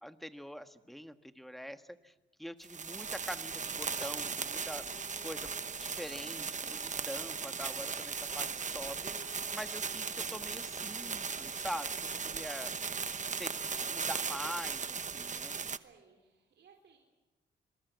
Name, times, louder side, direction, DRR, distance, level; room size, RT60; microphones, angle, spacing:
voice 1, 0.0-2.1 2.4-5.5 5.8-11.9 12.3-12.7 13.4-15.6, equal, ahead, 9 dB, 1.5 m, -44 dB
sound 1, 2.6-15.8, right 5 dB, 40° right, 1.1 m, -38 dB
Wind instrument woodwind instrument, 3.7-11.7, left 6 dB, 55° left, 2.8 m, -59 dB
voice 2, 15.8-17.0, right 5 dB, 65° right, 1 dB, 4.1 m, -62 dB
27.5 x 21.0 x 8.2 m, 1.1 s
cardioid pair, 90°, 20 cm